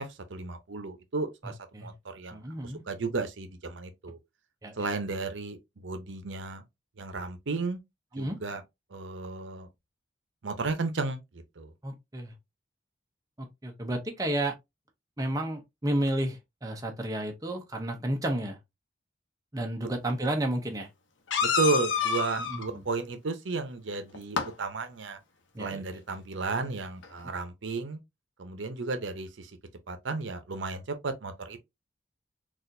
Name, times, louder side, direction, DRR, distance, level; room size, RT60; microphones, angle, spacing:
voice 1, 0.0-4.2 4.8-6.6 7.0-7.8 8.2-8.6 8.9-9.7 10.4-11.7 19.8-19.9 21.4-25.2 25.6-28.0 28.4-29.5 29.9-31.6, right 3 dB, 80° right, 0.7 m, -33 dB
voice 2, 1.4-1.9 2.3-2.8 4.6-4.7 8.1-8.4 11.8-12.3 13.4-14.5 15.2-18.6 19.5-20.9 22.4-22.8 25.5-25.8 26.7-26.8, right 1 dB, 20° right, 0.6 m, -32 dB
sound 1, 20.1-20.2 21.3-22.7 24.1-24.5 26.6-26.7 27.0-27.1, left 5 dB, 85° left, 0.7 m, -28 dB
4.1 x 2.5 x 2.6 m
head